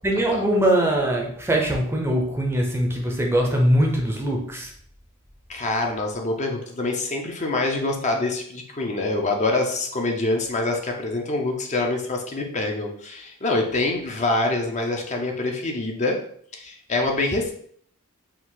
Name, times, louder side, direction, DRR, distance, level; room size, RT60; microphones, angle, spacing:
voice 1, 0.0-4.7, right 1 dB, 10° right, 0 dB, 0.6 m, -22 dB
voice 2, 5.5-16.2 16.5-17.5, left 2 dB, 30° left, 2 dB, 0.5 m, -25 dB
4.4 x 2.4 x 3.8 m, 0.62 s
head